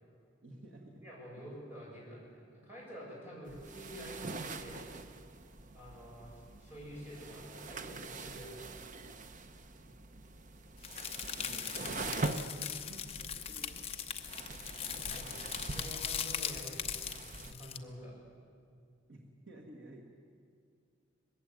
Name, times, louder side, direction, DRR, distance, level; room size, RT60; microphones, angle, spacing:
voice 1, 0.4-1.5 9.9-10.0 11.4-12.3 12.8-14.0 19.1-20.0, right 1 dB, 60° right, 0 dB, 1.9 m, -53 dB
voice 2, 1.0-4.8 5.7-8.7 14.9-16.9 17.4-18.2, equal, 10° right, -6 dB, 7.7 m, -48 dB
sound 1, 3.4-17.5, right 3 dB, 40° right, 0.8 m, -44 dB
sound 2, 10.8-17.8, left 9 dB, 30° left, 0.9 m, -40 dB
21.0 x 15.5 x 9.2 m, 2.2 s
head